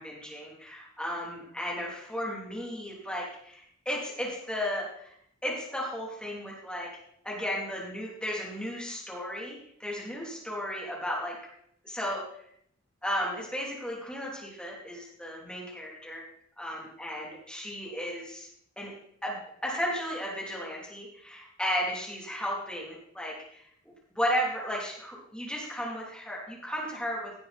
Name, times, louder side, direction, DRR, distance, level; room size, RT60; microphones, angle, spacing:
voice 1, 0.0-5.1 5.4-6.9 7.2-11.4 11.8-12.2 13.0-16.2 16.6-18.5 18.8-18.9 19.2-19.4 19.6-27.3, equal, 5° left, -4 dB, 3.1 m, -34 dB
16.5 x 7.5 x 4.2 m, 0.69 s
head